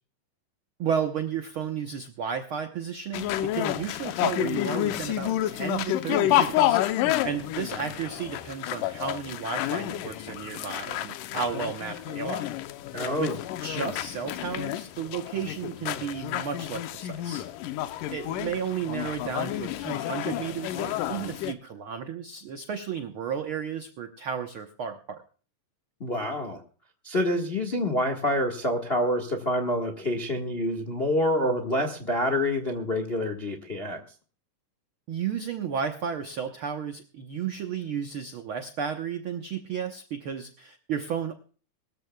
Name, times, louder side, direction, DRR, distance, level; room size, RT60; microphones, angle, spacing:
voice 1, 0.8-12.5 13.2-17.4 18.1-25.2 35.1-41.3, right 7 dB, 85° right, 6 dB, 1.1 m, -33 dB
sound 1, 3.1-21.5, left 13 dB, 80° left, 2.3 m, -30 dB
voice 2, 12.9-13.4 26.0-26.6 27.0-34.0, left 1 dB, 55° left, 5 dB, 0.6 m, -27 dB
22.5 x 14.0 x 2.3 m, 0.41 s
omnidirectional pair, 3.9 m